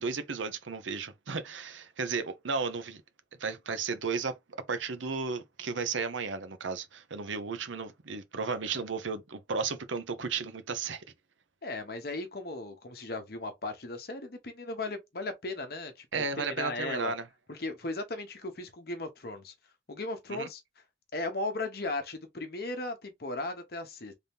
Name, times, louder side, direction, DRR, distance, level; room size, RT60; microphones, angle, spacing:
voice 1, 0.0-3.0 3.4-4.4 4.7-11.0 16.1-17.3 20.3-20.5, right 4 dB, 90° right, 0.8 m, -34 dB
voice 2, 11.6-17.1 17.5-19.5 19.9-20.6 21.1-24.1, left 2 dB, 55° left, 0.9 m, -37 dB
3.5 x 2.8 x 3.5 m
head